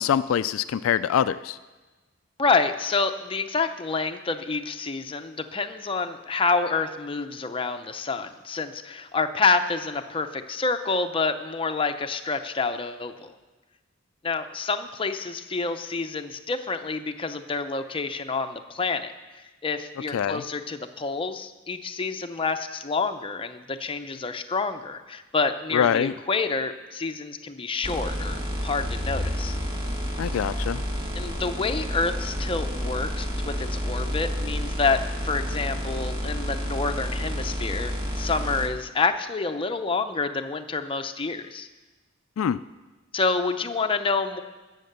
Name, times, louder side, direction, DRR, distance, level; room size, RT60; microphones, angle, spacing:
voice 1, 0.0-1.6 20.1-20.4 25.7-26.1 30.2-30.8 42.4-42.6, left 8 dB, 75° left, 14 dB, 0.3 m, -24 dB
voice 2, 2.4-13.3 14.2-19.1 19.6-29.6 31.2-41.7 43.1-44.4, left 4 dB, 25° left, 7 dB, 0.6 m, -28 dB
sound 1, 27.8-38.7, equal, 25° right, 1.5 m, -30 dB
16.5 x 6.6 x 6.7 m, 1.2 s
head